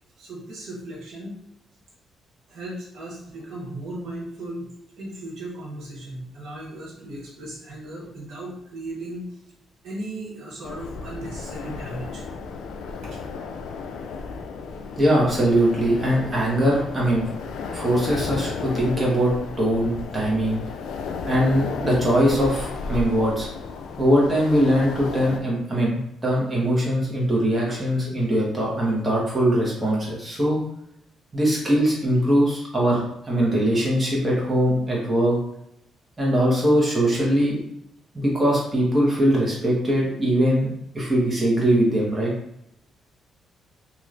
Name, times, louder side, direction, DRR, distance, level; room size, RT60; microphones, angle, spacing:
voice 1, 0.2-1.4 2.5-9.4 9.8-12.2 13.0-13.2, right 1 dB, 75° right, -4 dB, 1.2 m, -36 dB
sound 1, 10.6-25.4, left 4 dB, 80° left, 0.3 m, -34 dB
voice 2, 15.0-17.3 17.7-20.6 21.3-23.5 24.0-30.6 31.3-33.0 33.3-35.4 36.2-37.6 38.1-42.3, right 1 dB, 20° right, -4 dB, 1.3 m, -21 dB
3.1 x 2.8 x 2.6 m, 0.77 s
cardioid pair, 90°, 0 cm